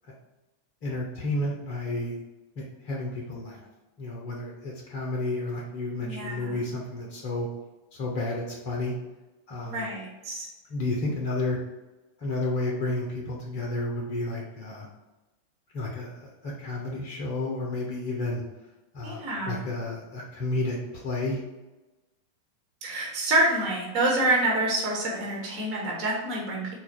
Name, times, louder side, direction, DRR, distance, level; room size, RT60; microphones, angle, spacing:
voice 1, 0.8-2.2 2.6-3.6 4.0-7.5 7.9-8.9 9.5-9.9 10.7-11.6 12.2-14.9 15.7-18.4 18.9-21.4, left 2 dB, 45° left, -1 dB, 0.8 m, -31 dB
voice 2, 6.0-6.6 9.7-10.5 19.0-19.6 22.8-26.7, right 2 dB, 40° right, -3 dB, 1.2 m, -27 dB
4.1 x 2.4 x 4.2 m, 1.1 s
figure-of-eight pair, 90°, 0 cm